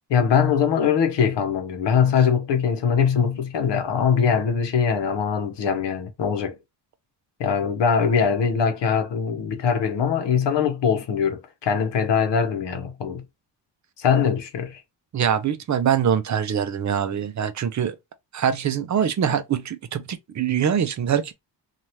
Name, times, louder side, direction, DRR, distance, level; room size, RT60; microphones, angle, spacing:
voice 1, 0.1-6.6 7.4-13.2 14.0-14.8, left 7 dB, 65° left, 0.9 m, -22 dB
voice 2, 15.1-18.0 18.3-21.3, right 8 dB, 40° right, 0.5 m, -23 dB
2.8 x 2.4 x 3.1 m
wide cardioid pair, 140°, 45 cm